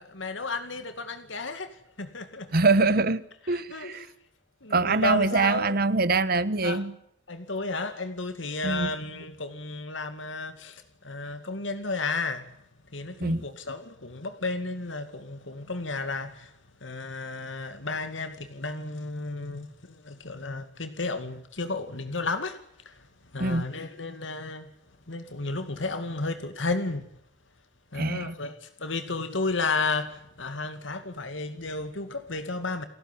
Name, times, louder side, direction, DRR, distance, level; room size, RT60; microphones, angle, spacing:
voice 1, 0.0-2.5 3.5-4.1 4.6-5.7 6.1-6.2 6.6-6.8 7.3-12.5 12.9-16.5 16.8-22.6 22.9-23.1 23.3-24.7 25.1-27.1 27.9-32.8, left 3 dB, 85° left, 2.3 m, -33 dB
voice 2, 2.5-4.1 4.7-7.0 8.6-8.9 13.2-13.4 23.4-23.7 27.9-28.3, right 3 dB, 55° right, 1.3 m, -24 dB
29.5 x 14.5 x 10.0 m
head